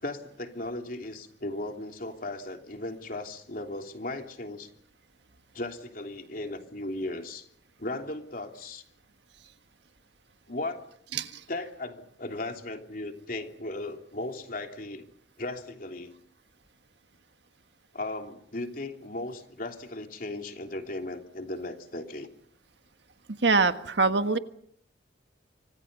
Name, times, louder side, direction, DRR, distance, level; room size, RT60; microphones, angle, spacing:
voice 1, 0.0-4.7 5.5-7.5 7.8-8.8 10.5-10.9 11.5-15.1 15.4-16.1 17.9-22.3, left 2 dB, 50° left, 4 dB, 3.2 m, -36 dB
voice 2, 23.4-24.4, right 4 dB, 70° right, 9 dB, 1.5 m, -24 dB
29.0 x 25.5 x 5.5 m, 0.66 s
head